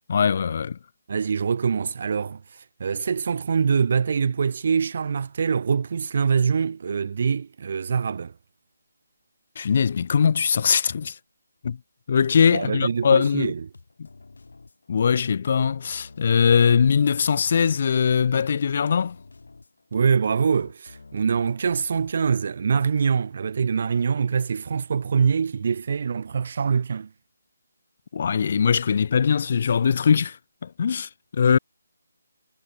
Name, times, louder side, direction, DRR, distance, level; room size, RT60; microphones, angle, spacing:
voice 1, 0.1-0.8 9.6-11.2 11.6-11.8 12.1-13.5 14.0-14.1 14.9-19.2 28.1-31.6, left 6 dB, 45° left, 0.4 m, -21 dB
voice 2, 1.1-2.4 2.8-8.3 12.5-13.6 19.9-27.1, right 6 dB, 45° right, 0.5 m, -24 dB
sound 1, 12.5-22.4, left 3 dB, 75° left, 5.6 m, -49 dB
figure-of-eight pair, 165°, 0 cm